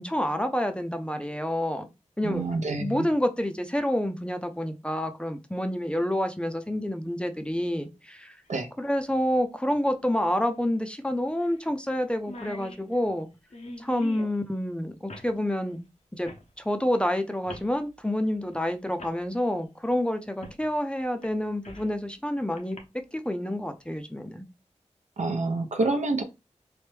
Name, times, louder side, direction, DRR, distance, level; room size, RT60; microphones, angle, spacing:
voice 1, 0.0-1.9 2.2-2.4 2.8-8.4 8.8-13.3 13.8-15.8 16.1-16.3 16.6-22.8 23.1-24.5, left 1 dB, 10° left, 0.5 m, -28 dB
voice 2, 2.2-3.1 8.5-8.7 25.2-26.2, right 3 dB, 75° right, 0.6 m, -27 dB
sound 1, 8.4-8.5 10.3-10.4 10.8-10.9 11.4-11.6 11.9-12.0 12.2-14.4 15.1-15.3 16.2-16.5 17.4-17.7 18.5-18.6 19.0-19.2 20.4-20.6 21.0-21.9 22.6-22.8, left 1 dB, 65° left, 0.8 m, -42 dB
3.3 x 2.1 x 3.1 m
wide cardioid pair, 55°, 12 cm